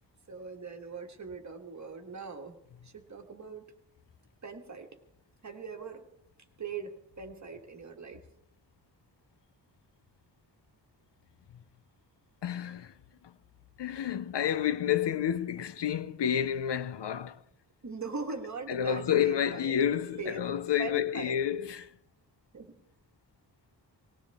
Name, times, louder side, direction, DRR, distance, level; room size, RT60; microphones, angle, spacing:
voice 1, 0.3-2.6 2.8-3.7 4.4-4.9 5.4-6.0 6.6-8.2 17.8-19.8 20.2-20.5 20.8-21.4 22.5-22.7, right 4 dB, 40° right, 1.7 m, -41 dB
voice 2, 12.4-12.9 13.2-13.3 13.8-17.4 18.7-21.9, left 9 dB, 75° left, 0.7 m, -30 dB
19.0 x 18.5 x 3.6 m
wide cardioid pair, 160°, 42 cm